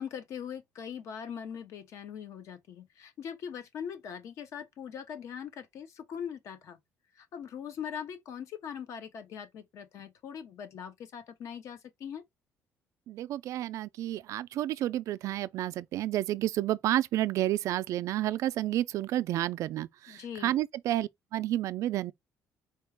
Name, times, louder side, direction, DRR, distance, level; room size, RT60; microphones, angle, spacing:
voice 1, 0.0-6.8 7.2-12.2 20.1-20.5, left 8 dB, 60° left, 0.8 m, -41 dB
voice 2, 13.1-22.1, right 13 dB, 65° right, 0.3 m, -30 dB
4.4 x 2.3 x 3.4 m
cardioid pair, 120°, 6 cm